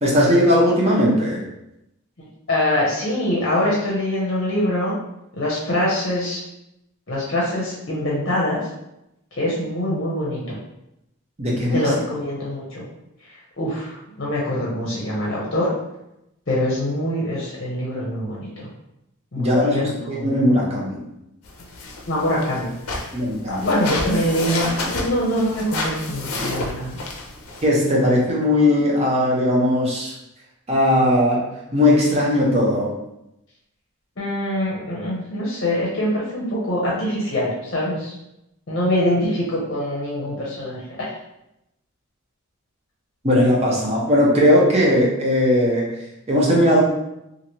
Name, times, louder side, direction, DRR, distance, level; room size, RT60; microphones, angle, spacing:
voice 1, 0.0-1.4 11.4-11.8 19.4-21.0 23.1-23.7 27.6-30.1 30.7-32.9 43.2-45.9 46.3-46.8, left 1 dB, 30° right, -4 dB, 0.7 m, -18 dB
voice 2, 2.5-4.9 5.4-6.4 7.1-8.6 9.4-10.6 11.7-12.8 13.6-15.7 16.5-18.7 19.3-20.3 22.1-23.0 23.5-26.9 34.2-38.1 38.7-41.1, left 1 dB, 50° left, -5 dB, 0.7 m, -24 dB
sound 1, 21.4-27.7, left 2 dB, 85° left, 0.5 m, -30 dB
2.9 x 2.5 x 2.9 m, 0.87 s
head